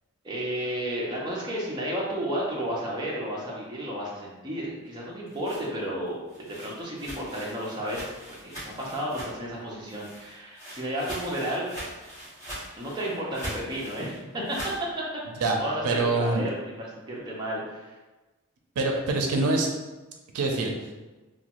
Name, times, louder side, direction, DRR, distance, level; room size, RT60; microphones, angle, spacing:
voice 1, 0.2-11.7 12.8-18.0, equal, 20° right, -4 dB, 0.5 m, -32 dB
sound 1, 5.0-9.6 9.8-14.8, right 1 dB, 15° left, 1.3 m, -41 dB
voice 2, 15.8-16.4 18.8-19.7 20.3-20.7, right 3 dB, 85° right, 2 dB, 0.5 m, -24 dB
2.9 x 2.2 x 2.9 m, 1.2 s
head